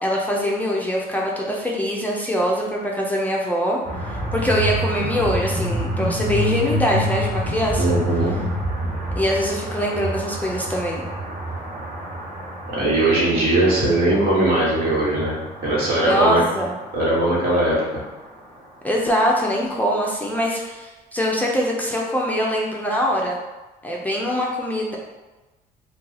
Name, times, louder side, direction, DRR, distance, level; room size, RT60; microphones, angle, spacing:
voice 1, 0.0-8.0 9.2-11.0 16.0-16.8 18.8-23.4 23.8-25.0, equal, 10° left, -3 dB, 0.4 m, -23 dB
sound 1, 3.8-17.7, equal, 45° right, 0.9 m, -28 dB
voice 2, 7.8-8.3 12.7-15.3 15.6-16.4 16.9-18.0, right 1 dB, 65° right, -5 dB, 1.3 m, -19 dB
2.7 x 2.3 x 4.0 m, 1.1 s
cardioid pair, 110°, 17 cm